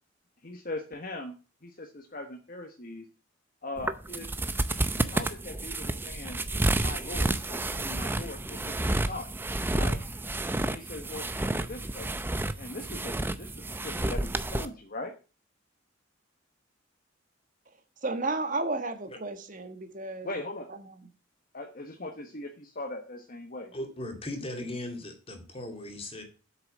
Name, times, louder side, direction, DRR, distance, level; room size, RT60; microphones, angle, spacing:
voice 1, 0.4-1.4 1.6-3.1 3.6-4.3 5.0-9.3 9.7-10.0 10.6-12.1 12.6-15.1 20.2-20.7 21.5-23.7, left 2 dB, 45° left, 1.2 m, -40 dB
sound 1, 3.8-14.7, right 2 dB, 10° right, 0.6 m, -30 dB
voice 2, 18.0-20.3 20.8-20.9, right 3 dB, 40° right, 1.4 m, -32 dB
voice 3, 23.7-26.2, left 1 dB, 30° left, 2.2 m, -38 dB
8.1 x 6.7 x 7.4 m
head